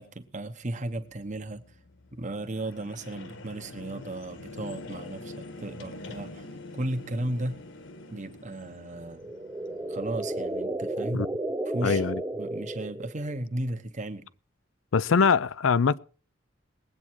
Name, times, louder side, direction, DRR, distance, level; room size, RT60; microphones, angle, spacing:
voice 1, 0.0-1.6 2.1-6.5 6.7-7.6 8.1-9.3 9.9-11.2 11.7-12.0 12.4-14.3, right 1 dB, 40° right, 1.2 m, -35 dB
sound 1, 0.9-10.6, left 2 dB, 65° left, 1.4 m, -45 dB
sound 2, 9.0-13.4, right 1 dB, 15° right, 0.7 m, -33 dB
voice 2, 11.8-12.2 14.9-16.0, left 5 dB, 85° left, 0.5 m, -23 dB
20.0 x 8.6 x 4.6 m
head